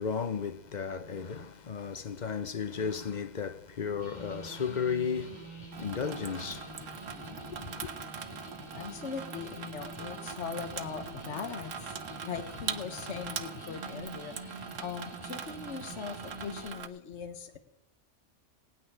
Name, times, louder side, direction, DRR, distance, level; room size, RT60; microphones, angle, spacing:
voice 1, 0.0-7.9, left 6 dB, 45° left, 0.7 m, -35 dB
sound 1, 4.0-16.7, right 1 dB, 20° left, 2.6 m, -47 dB
Water tap faucet / Sink (filling or washing), 5.7-16.9, right 7 dB, 85° right, 1.3 m, -42 dB
voice 2, 7.0-7.4 8.7-17.6, left 6 dB, 70° left, 1.3 m, -40 dB
18.0 x 6.3 x 9.8 m
omnidirectional pair, 1.3 m